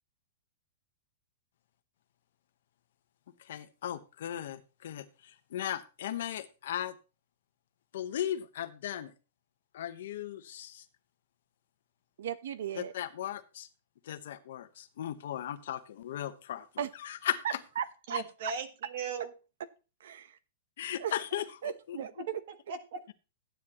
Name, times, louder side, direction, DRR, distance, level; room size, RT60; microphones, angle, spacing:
voice 1, 3.4-7.0 7.9-9.1 9.7-10.9 12.8-13.7 14.0-16.7 17.0-17.4 20.8-22.0, left 11 dB, 55° left, 11 dB, 1.1 m, -37 dB
voice 2, 12.2-12.9 16.8-16.9 17.8-18.5 20.0-20.4 21.0-21.7 22.0-22.1, right 9 dB, 65° right, 14 dB, 0.9 m, -37 dB
voice 3, 18.1-19.3 21.9-23.1, right 5 dB, 45° right, 8 dB, 1.7 m, -38 dB
14.0 x 9.9 x 3.0 m, 0.32 s
supercardioid pair, 180°, 0 cm